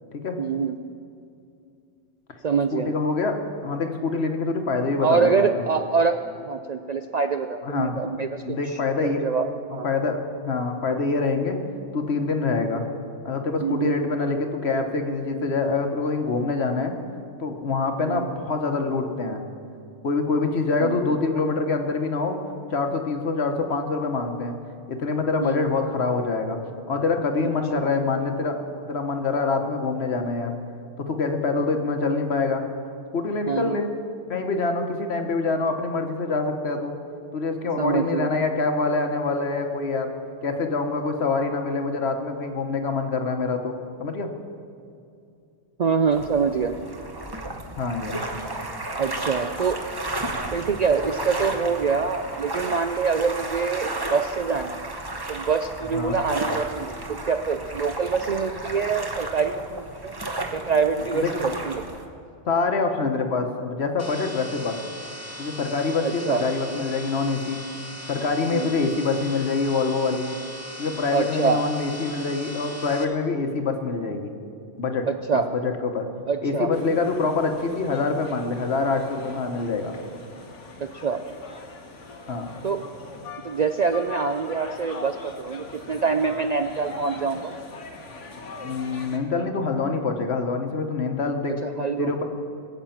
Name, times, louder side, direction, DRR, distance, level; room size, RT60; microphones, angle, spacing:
voice 1, 0.4-0.8 2.4-2.9 5.0-9.9 13.6-14.0 18.1-18.3 20.8-21.0 25.4-25.6 27.4-27.9 33.5-33.8 37.8-38.3 45.8-46.7 49.0-49.8 50.5-54.8 55.3-60.1 60.5-61.8 66.0-66.4 68.5-68.7 71.1-71.6 75.1-75.5 76.3-76.7 80.8-81.2 82.6-82.8 83.4-87.5 91.6-92.1, right 5 dB, 55° right, 7 dB, 0.5 m, -25 dB
voice 2, 2.7-3.4 3.6-5.6 7.6-8.0 8.4-9.3 9.8-11.6 11.9-12.9 13.2-17.0 17.4-19.4 20.0-22.4 22.7-24.5 24.9-26.6 26.9-30.5 31.0-32.6 33.1-33.9 34.3-36.9 37.3-40.1 40.4-43.7 44.0-44.3 47.8-48.2 55.9-56.2 61.1-61.3 62.5-64.7 65.4-67.6 68.1-70.3 70.8-74.3 74.8-75.0 75.3-76.1 76.4-80.0 82.3-82.5 88.6-91.5 92.0-92.2, left 4 dB, 65° left, 5 dB, 1.4 m, -25 dB
sound 1, 46.1-62.0, right 2 dB, 20° right, 1.0 m, -33 dB
sound 2, 64.0-73.0, equal, 15° left, 1.0 m, -39 dB
sound 3, 76.7-89.2, left 3 dB, 90° left, 1.7 m, -42 dB
20.5 x 8.2 x 5.8 m, 2.5 s
omnidirectional pair, 1.2 m